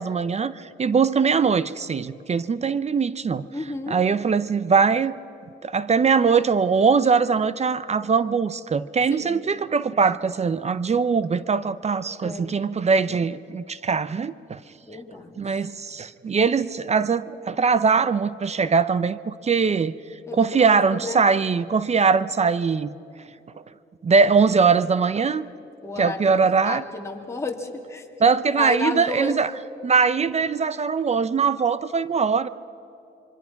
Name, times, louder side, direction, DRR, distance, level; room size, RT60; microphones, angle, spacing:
voice 1, 0.0-3.5 3.9-5.2 5.6-14.6 15.4-19.9 20.3-22.9 24.0-25.5 26.0-26.8 28.2-29.5 29.8-32.5, right 5 dB, 35° right, 16 dB, 0.7 m, -21 dB
voice 2, 3.5-4.0 9.1-9.4 12.2-12.5 14.8-15.6 20.3-21.3 25.8-28.3 28.6-29.4, left 2 dB, 15° left, 1 dB, 2.8 m, -32 dB
26.5 x 23.5 x 5.9 m, 2.7 s
cardioid pair, 90°, 20 cm